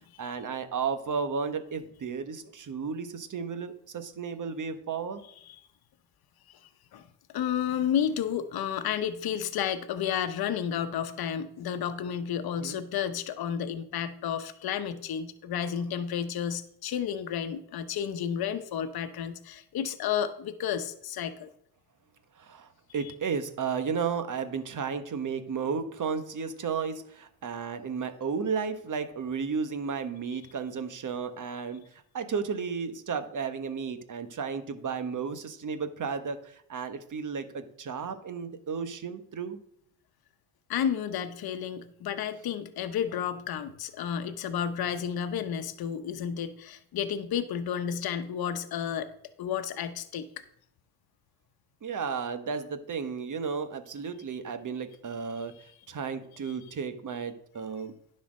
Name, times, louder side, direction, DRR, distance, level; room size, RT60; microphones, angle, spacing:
voice 1, 0.2-5.2 12.6-12.8 22.4-31.8 32.1-39.6 51.8-55.5 55.9-57.9, right 6 dB, 50° right, 9 dB, 1.3 m, -33 dB
voice 2, 7.3-21.5 23.0-23.1 40.7-49.1 49.4-50.3 56.4-56.5, left 8 dB, 65° left, 9 dB, 0.9 m, -31 dB
10.0 x 4.3 x 6.4 m, 0.68 s
supercardioid pair, 60°, 39 cm